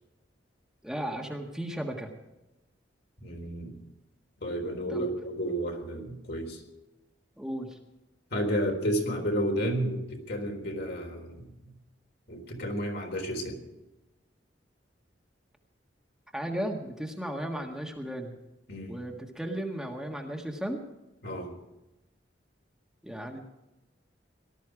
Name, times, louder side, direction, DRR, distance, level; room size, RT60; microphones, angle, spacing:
voice 1, 0.8-2.1 4.9-5.1 7.4-7.8 16.3-18.4 18.9-20.8 23.0-23.4, right 1 dB, 5° right, 1 dB, 1.6 m, -35 dB
voice 2, 3.2-3.7 4.4-6.6 8.3-11.7 12.3-13.6 18.7-18.9 21.2-21.5, equal, 60° left, 2 dB, 4.0 m, -31 dB
18.5 x 13.0 x 4.8 m, 0.97 s
head